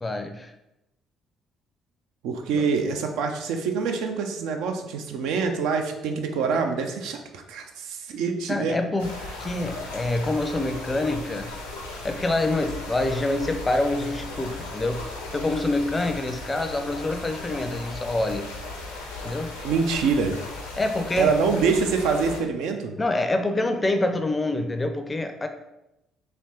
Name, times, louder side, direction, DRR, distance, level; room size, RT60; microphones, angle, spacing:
voice 1, 0.0-0.5 2.5-2.6 8.5-9.1 9.4-11.5 12.0-15.0 15.3-18.5 19.2-19.5 20.8-21.3 23.0-25.5, left 2 dB, 20° left, 7 dB, 0.4 m, -26 dB
voice 2, 2.2-8.8 19.6-20.4 21.2-22.9, right 5 dB, 65° right, 4 dB, 0.3 m, -25 dB
sound 1, 9.0-22.4, left 2 dB, 80° left, 0.6 m, -37 dB
3.2 x 2.8 x 2.9 m, 0.90 s
figure-of-eight pair, 50°, 0 cm